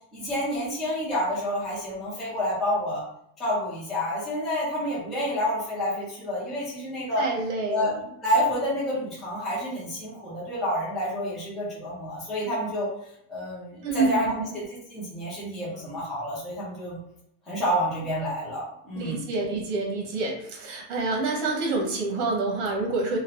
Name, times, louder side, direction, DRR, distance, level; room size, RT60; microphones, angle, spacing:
voice 1, 0.1-3.0 3.4-7.2 7.7-7.9 8.2-12.9 13.3-14.6 14.9-17.0 17.5-19.2, equal, ahead, -9 dB, 0.3 m, -29 dB
voice 2, 7.2-8.0 13.8-14.5 19.0-23.2, right 3 dB, 80° right, 0 dB, 1.1 m, -27 dB
3.0 x 2.3 x 2.9 m, 0.76 s
cardioid pair, 175°, 50 cm